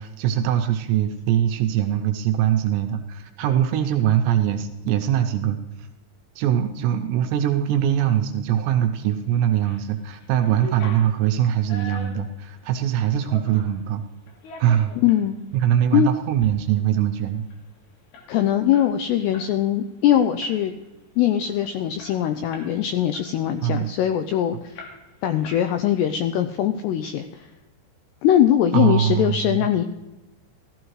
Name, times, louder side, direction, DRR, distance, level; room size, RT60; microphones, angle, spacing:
voice 1, 0.0-5.9 6.4-14.0 14.6-15.0 15.5-17.4 23.6-23.9 28.7-29.5, right 10 dB, 80° right, 5 dB, 2.7 m, -22 dB
sound 1, 9.3-9.9 10.2-13.8 14.3-15.2 15.7-15.8 16.2-16.5 16.8-16.9 17.2-19.5 19.8-20.0 20.4-20.9 21.3-21.4 21.6-22.8 23.1-24.3 24.8-25.2 25.4-26.1, left 1 dB, 65° left, 3.8 m, -42 dB
voice 2, 15.0-15.4 15.9-16.1 18.3-20.7 21.2-24.8 25.2-27.5 28.2-29.9, left 11 dB, 90° left, 9 dB, 2.4 m, -21 dB
15.0 x 13.5 x 3.2 m, 1.1 s
omnidirectional pair, 5.4 m